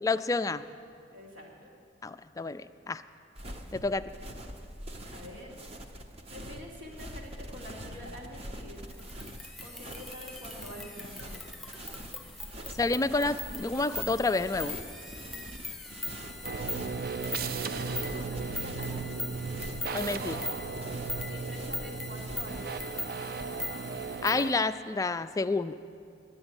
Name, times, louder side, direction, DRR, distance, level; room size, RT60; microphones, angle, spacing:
voice 1, 0.0-0.6 2.0-3.0 3.7-4.1 12.8-14.7 19.9-20.4 24.2-25.7, left 3 dB, 20° left, 11 dB, 0.3 m, -29 dB
voice 2, 1.1-1.7 5.1-5.6 6.3-8.9 9.6-11.7 12.6-13.4 16.2-16.4 17.4-19.3 20.2-20.6 21.2-23.5, equal, 75° right, -3 dB, 2.7 m, -47 dB
sound 1, 3.3-22.6, equal, 35° right, 0.9 m, -45 dB
sound 2, 8.9-24.5, left 2 dB, ahead, 0.8 m, -41 dB
sound 3, 16.4-24.5, right 4 dB, 55° right, 0.5 m, -36 dB
11.0 x 8.0 x 9.6 m, 2.3 s
head